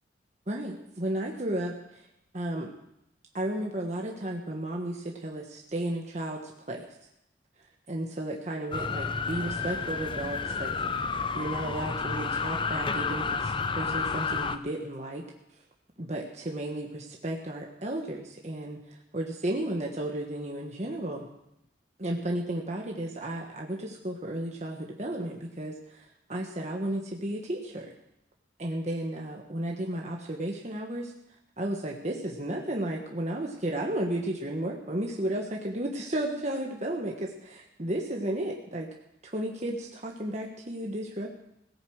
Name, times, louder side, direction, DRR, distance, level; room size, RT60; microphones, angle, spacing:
voice 1, 0.5-2.0 2.3-2.7 3.3-6.8 7.9-10.7 11.1-15.3 16.0-21.2 22.0-27.9 28.6-31.1 31.6-38.9 39.2-41.3, right 1 dB, 40° right, 0 dB, 1.4 m, -33 dB
sound 1, 8.7-14.6, left 4 dB, 30° left, 0.6 m, -31 dB
17.0 x 9.6 x 6.4 m, 0.81 s
head